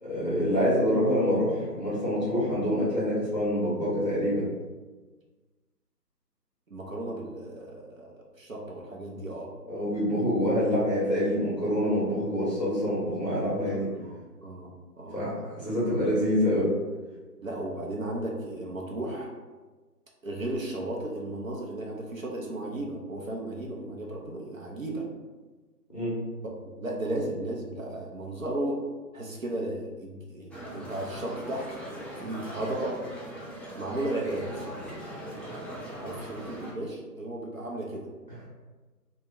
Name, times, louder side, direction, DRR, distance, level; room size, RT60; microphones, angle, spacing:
voice 1, 0.0-4.5 9.7-13.9 15.1-16.7 25.9-26.2, equal, 25° left, -9 dB, 0.7 m, -26 dB
voice 2, 6.7-9.5 12.7-12.8 13.7-14.2 14.4-14.7 15.0-15.1 17.4-19.3 20.2-25.0 26.6-28.8 29.1-31.7 32.2-33.0 33.7-34.7 36.0-38.1, right 1 dB, 55° right, -1 dB, 0.5 m, -34 dB
sound 1, 30.5-36.7, equal, 5° left, 0.3 m, -40 dB
2.1 x 2.1 x 3.5 m, 1.3 s
figure-of-eight pair, 165°, 48 cm